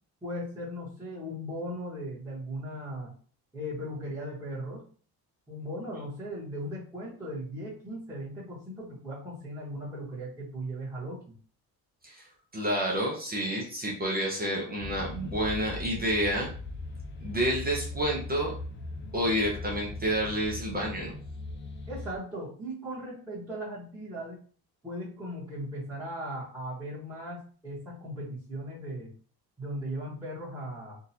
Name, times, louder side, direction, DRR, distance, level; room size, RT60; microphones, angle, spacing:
voice 1, 0.2-3.1 3.5-4.8 5.5-11.3 21.9-24.4 24.8-29.1 29.6-31.0, equal, 5° right, -9 dB, 1.3 m, -38 dB
voice 2, 12.5-16.5 17.2-18.5 19.1-21.2, equal, 25° right, -2 dB, 0.7 m, -29 dB
sound 1, 14.8-22.2, left 2 dB, 30° left, 0.4 m, -40 dB
3.7 x 2.5 x 2.8 m, 0.42 s
cardioid pair, 150°, 39 cm